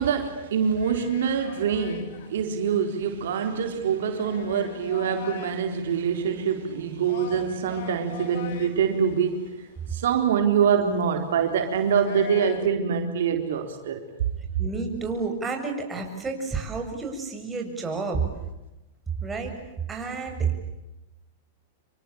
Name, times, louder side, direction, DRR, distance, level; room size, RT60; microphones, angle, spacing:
voice 1, 0.0-9.5 9.9-14.0, right 7 dB, 75° right, 4.0 m, -25 dB
sound 1, 0.6-12.7, left 8 dB, 65° left, 3.0 m, -44 dB
voice 2, 14.6-18.2 19.2-19.5 19.9-20.7, right 4 dB, 15° right, 7.3 m, -30 dB
27.5 x 23.5 x 8.8 m
hypercardioid pair, 125°, 0 cm